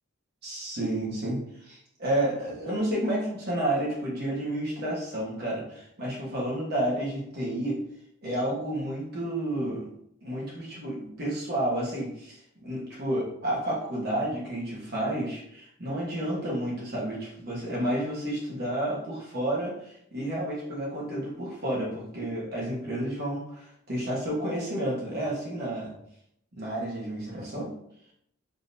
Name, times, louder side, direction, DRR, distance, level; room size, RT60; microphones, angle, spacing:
voice 1, 0.4-7.8 8.2-9.9 10.2-25.9 26.5-27.7, right 1 dB, 50° right, -5 dB, 1.2 m, -31 dB
3.7 x 2.9 x 2.6 m, 0.72 s
head